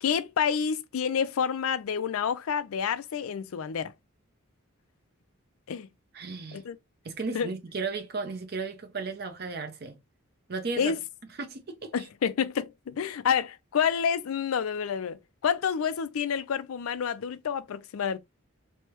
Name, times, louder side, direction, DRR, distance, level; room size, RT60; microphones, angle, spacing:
voice 1, 0.0-3.9 5.7-5.9 6.5-6.8 7.3-7.5 10.8-11.0 11.9-18.2, left 7 dB, 90° left, 0.4 m, -28 dB
voice 2, 6.1-6.6 7.0-10.0 10.5-10.9 11.4-11.9, right 4 dB, 50° right, 0.7 m, -35 dB
3.2 x 2.2 x 2.9 m
head